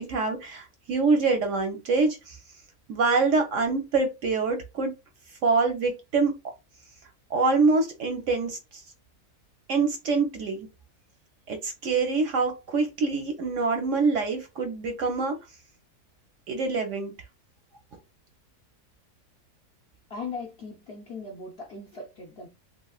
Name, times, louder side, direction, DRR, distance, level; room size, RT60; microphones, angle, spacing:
voice 1, 0.0-2.4 2.9-4.9 5.4-6.3 7.3-8.8 9.7-10.7 11.5-15.3 16.5-17.1, right 4 dB, 65° right, 0.8 m, -25 dB
voice 2, 20.1-22.5, left 4 dB, 65° left, 0.6 m, -38 dB
3.0 x 2.7 x 2.3 m
omnidirectional pair, 1.6 m